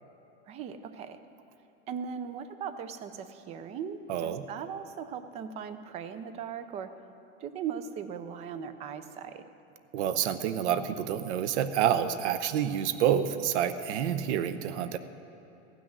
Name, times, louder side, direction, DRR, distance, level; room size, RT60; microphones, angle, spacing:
voice 1, 0.5-1.2 1.9-6.9 7.4-9.4, right 7 dB, 20° right, 11 dB, 0.4 m, -38 dB
voice 2, 4.1-4.4 9.9-15.0, right 9 dB, 70° right, 12 dB, 0.8 m, -28 dB
15.0 x 6.4 x 9.3 m, 2.9 s
supercardioid pair, 145°, 36 cm